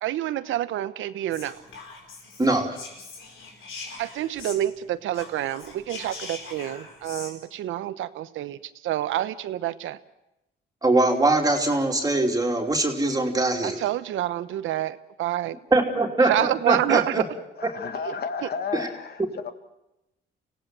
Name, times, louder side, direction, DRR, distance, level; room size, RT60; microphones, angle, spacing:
voice 1, 0.0-1.6 4.0-10.0 13.6-15.6 16.2-17.3 18.0-18.1 18.4-18.5, right 13 dB, 85° right, 1.0 m, -28 dB
Whispering, 1.3-4.8 5.1-7.3, left 4 dB, 85° left, 5.1 m, -41 dB
voice 2, 2.4-2.7 10.8-13.8 15.7-16.3 16.7-17.2 18.7-18.9, right 2 dB, 20° right, 3.1 m, -22 dB
voice 3, 17.6-19.5, left 6 dB, 55° left, 1.9 m, -32 dB
26.0 x 17.0 x 7.6 m
cardioid pair, 90°, 20 cm